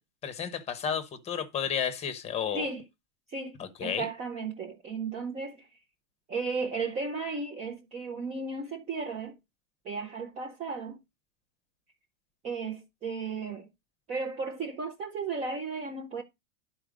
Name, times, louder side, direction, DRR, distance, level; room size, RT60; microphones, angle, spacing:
voice 1, 0.2-2.7 3.6-4.1, left 8 dB, 15° left, 1.0 m, -32 dB
voice 2, 3.3-5.7 6.3-9.4 9.8-11.0 12.4-13.7 14.1-16.2, right 4 dB, 15° right, 0.7 m, -35 dB
11.0 x 4.5 x 5.0 m
supercardioid pair, 165°, 40 cm